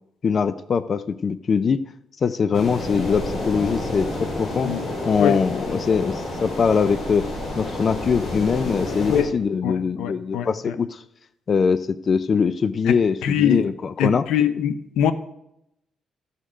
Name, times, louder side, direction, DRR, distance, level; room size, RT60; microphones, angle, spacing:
voice 1, 0.2-1.8 2.2-4.7 5.0-7.3 7.6-11.0 11.5-14.3, left 6 dB, 45° left, 15 dB, 0.4 m, -22 dB
sound 1, 2.5-9.2, left 1 dB, 65° left, 3.6 m, -29 dB
voice 2, 9.6-10.5 13.2-13.6 14.0-15.1, left 9 dB, 90° left, 13 dB, 0.7 m, -22 dB
14.0 x 6.5 x 5.0 m, 0.82 s
cardioid pair, 90°, 0 cm